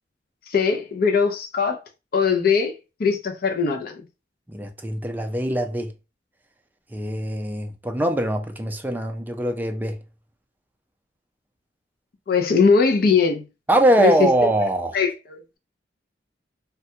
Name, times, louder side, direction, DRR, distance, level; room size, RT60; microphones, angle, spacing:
voice 1, 0.5-1.8 2.1-2.7 3.0-4.0 12.3-13.4 14.0-14.3 14.9-15.6, left 5 dB, 55° left, 0.5 m, -20 dB
voice 2, 4.5-5.9 6.9-10.0 13.7-14.9, right 1 dB, 10° right, 0.4 m, -22 dB
3.3 x 2.2 x 2.7 m
head